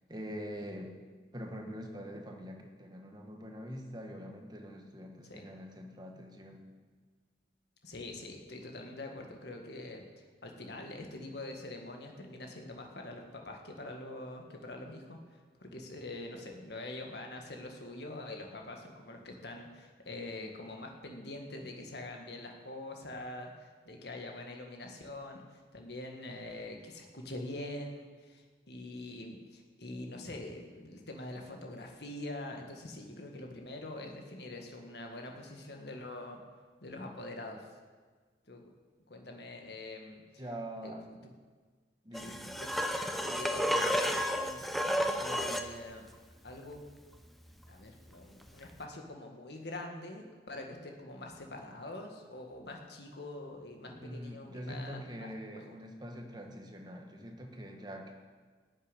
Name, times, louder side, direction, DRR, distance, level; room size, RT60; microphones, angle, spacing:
voice 1, 0.1-1.0 1.3-6.6 40.4-41.0 42.0-42.4 54.0-58.1, equal, 25° right, 3 dB, 1.4 m, -44 dB
voice 2, 7.8-36.4 36.8-37.7 38.5-38.6 39.1-40.5 40.8-41.0 42.1-44.6 45.2-46.1 46.4-46.8 47.7-55.7, left 2 dB, 65° left, 2 dB, 1.8 m, -44 dB
sound 1, 42.1-45.7 48.6-48.7, equal, ahead, 0.7 m, -31 dB
13.5 x 7.3 x 10.0 m, 1.5 s
head